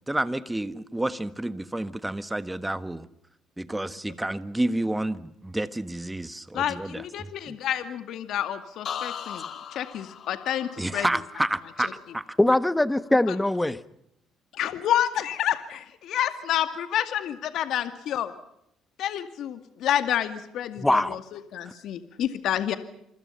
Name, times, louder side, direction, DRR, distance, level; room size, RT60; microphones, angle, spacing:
voice 1, 0.1-3.1 3.6-7.6 10.8-12.2, right 1 dB, 10° right, 13 dB, 1.5 m, -30 dB
voice 2, 6.5-11.1 13.3-13.4 14.5-18.3 19.0-22.8, left 11 dB, 65° left, 10 dB, 2.2 m, -29 dB
sound 1, 8.8-12.7 13.0-13.5, left 8 dB, 50° left, 2.8 m, -39 dB
voice 3, 12.4-13.8 20.8-21.2, left 1 dB, 5° left, 15 dB, 1.2 m, -22 dB
28.0 x 25.0 x 5.7 m, 0.76 s
cardioid pair, 125°, 0 cm